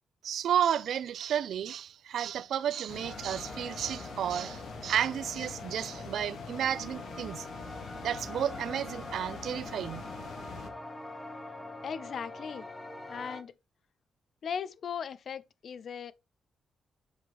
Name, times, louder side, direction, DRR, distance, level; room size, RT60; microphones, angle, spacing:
voice 1, 0.2-7.5 8.0-10.0, right 9 dB, 70° right, 0.4 m, -32 dB
sound 1, 2.9-10.7, left 5 dB, 70° left, 1.5 m, -44 dB
sound 2, 3.0-13.4, left 2 dB, 10° left, 0.9 m, -44 dB
voice 2, 11.8-12.7 13.1-13.5 14.4-16.1, left 7 dB, 50° left, 0.4 m, -38 dB
7.1 x 5.4 x 3.0 m
cardioid pair, 150°, 0 cm